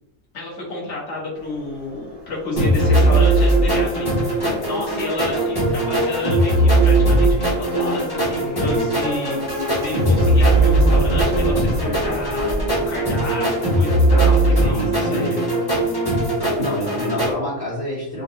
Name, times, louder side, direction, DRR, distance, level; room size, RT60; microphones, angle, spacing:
voice 1, 0.3-12.5 12.9-15.4, left 2 dB, 60° left, -4 dB, 1.4 m, -30 dB
Subway metro underground, 1.4-13.3, right 1 dB, 15° right, 0.7 m, -31 dB
sound 1, 2.6-17.3, right 1 dB, 20° left, 0.9 m, -19 dB
voice 2, 14.6-15.6 16.6-18.2, equal, 45° left, -7 dB, 1.4 m, -27 dB
3.9 x 2.7 x 2.6 m, 0.90 s
omnidirectional pair, 1.4 m